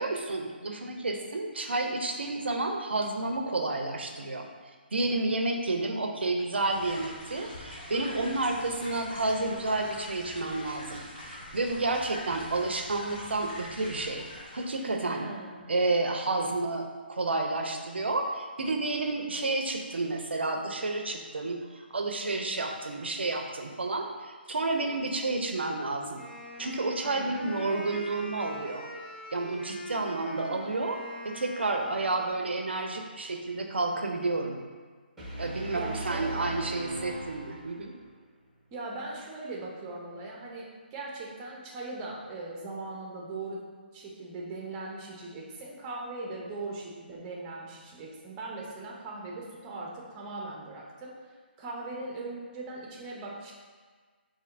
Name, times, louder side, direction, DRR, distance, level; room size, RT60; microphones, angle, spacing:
voice 1, 0.0-4.5 4.9-14.2 14.5-15.3 15.7-26.2 26.6-28.9 29.3-31.0 31.2-34.6 35.4-37.9, right 2 dB, 85° right, 3 dB, 0.5 m, -30 dB
sound 1, 6.7-14.9, left 1 dB, 50° left, 1.5 m, -44 dB
voice 2, 15.1-15.7 27.0-27.6 35.7-36.6 38.7-43.6 43.9-51.1 51.6-53.5, right 2 dB, 25° right, -2 dB, 0.7 m, -40 dB
Wind instrument woodwind instrument, 26.1-32.3, equal, 85° left, 0.8 m, -42 dB
sound 2, 35.2-38.1, right 1 dB, ahead, 1.2 m, -39 dB
4.2 x 2.6 x 2.5 m, 1.5 s
figure-of-eight pair, 145°, 6 cm